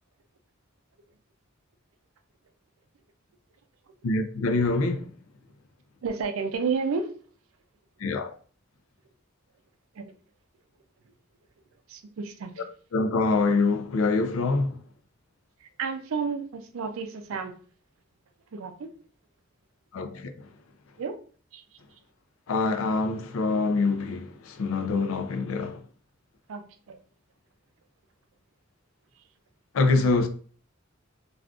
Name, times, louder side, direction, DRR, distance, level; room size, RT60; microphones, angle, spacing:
voice 1, 4.0-5.1 8.0-8.3 12.9-14.7 19.9-20.3 22.5-25.8 29.7-30.3, left 3 dB, 80° left, 0.4 m, -25 dB
voice 2, 6.0-7.1 10.0-10.1 11.9-12.5 15.8-17.5 18.5-18.9 21.0-21.2 21.5-21.6 26.5-27.0, right 5 dB, 80° right, 0.4 m, -31 dB
3.5 x 2.4 x 2.3 m
head